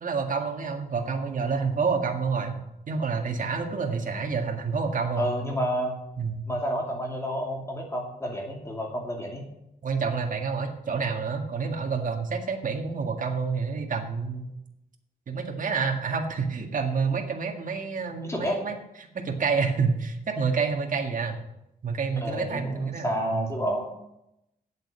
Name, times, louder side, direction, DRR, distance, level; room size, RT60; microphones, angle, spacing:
voice 1, 0.0-2.6 2.9-5.3 6.2-6.4 9.8-14.5 15.3-18.8 19.1-21.5 21.8-23.5, right 5 dB, 55° right, 3 dB, 1.9 m, -28 dB
voice 2, 5.2-6.0 6.5-9.4 18.2-18.6 22.2-23.9, equal, 15° left, 0 dB, 2.6 m, -30 dB
8.8 x 7.9 x 7.5 m, 0.85 s
wide cardioid pair, 115°, 16 cm